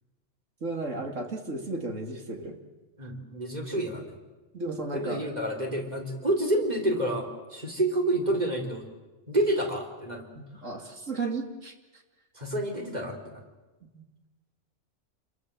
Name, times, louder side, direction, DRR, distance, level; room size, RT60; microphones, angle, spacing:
voice 1, 0.6-2.6 4.5-5.2 10.6-12.0 13.9-14.0, right 3 dB, 90° right, 4 dB, 3.1 m, -34 dB
voice 2, 3.0-4.2 4.8-8.9 9.3-10.3 12.3-13.4, right 1 dB, 35° right, 2 dB, 4.3 m, -29 dB
28.5 x 23.0 x 7.8 m, 1.2 s
omnidirectional pair, 1.3 m